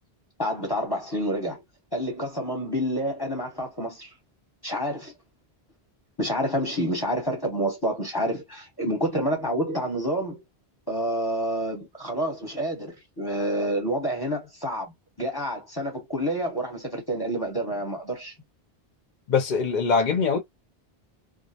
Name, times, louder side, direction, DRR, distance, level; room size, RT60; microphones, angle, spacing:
voice 1, 0.4-1.6 1.9-4.1 4.6-5.1 6.2-10.4 10.9-14.9 15.2-18.3, equal, 25° left, 0.9 m, -28 dB
voice 2, 19.3-20.4, left 5 dB, 55° left, 0.6 m, -22 dB
2.4 x 2.0 x 2.7 m
omnidirectional pair, 1.0 m